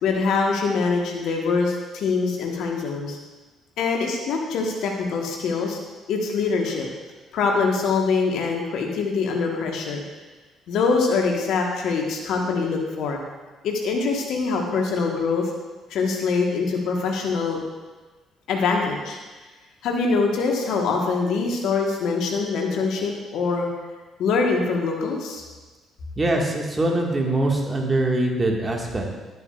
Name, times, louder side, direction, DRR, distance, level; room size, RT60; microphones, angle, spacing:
voice 1, 0.0-3.2 3.8-5.8 6.1-6.9 7.3-10.0 10.7-13.2 13.6-15.5 15.9-17.6 18.5-19.2 19.8-23.7 24.2-25.4, left 4 dB, 65° left, 1 dB, 1.4 m, -24 dB
voice 2, 26.2-29.1, right 2 dB, 30° right, 0 dB, 1.8 m, -23 dB
11.0 x 9.0 x 2.5 m, 1.2 s
hypercardioid pair, 45°, 0 cm